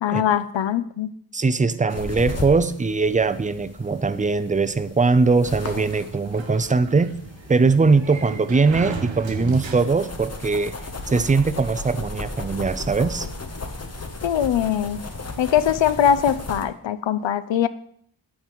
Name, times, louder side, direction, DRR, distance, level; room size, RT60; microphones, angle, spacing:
voice 1, 0.0-1.1 14.2-15.0 15.4-17.7, left 9 dB, 75° left, 14 dB, 0.6 m, -21 dB
voice 2, 1.3-7.1 7.5-10.7 11.1-13.3, right 4 dB, 20° right, 14 dB, 0.4 m, -21 dB
sound 1, 1.9-16.7, left 2 dB, 35° left, 0.9 m, -36 dB
Sliding door, 5.6-10.3, right 5 dB, 75° right, 1.0 m, -36 dB
8.8 x 8.6 x 3.0 m, 0.64 s
wide cardioid pair, 75°, 46 cm